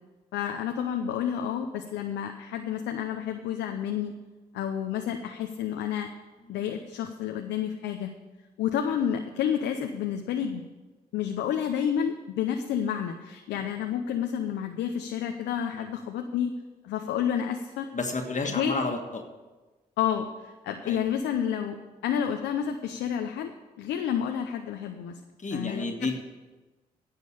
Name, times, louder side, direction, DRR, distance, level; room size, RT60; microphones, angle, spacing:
voice 1, 0.3-4.1 4.5-6.1 6.5-8.1 8.6-10.7 11.1-16.5 16.8-17.9 18.4-18.9 20.0-21.8 22.0-23.5 23.8-25.2 25.5-26.1, left 9 dB, 85° left, 5 dB, 0.7 m, -30 dB
voice 2, 17.9-19.2 20.8-21.0 25.4-26.2, left 3 dB, 45° left, 4 dB, 1.7 m, -31 dB
11.0 x 7.4 x 8.4 m, 1.2 s
hypercardioid pair, 40°, 18 cm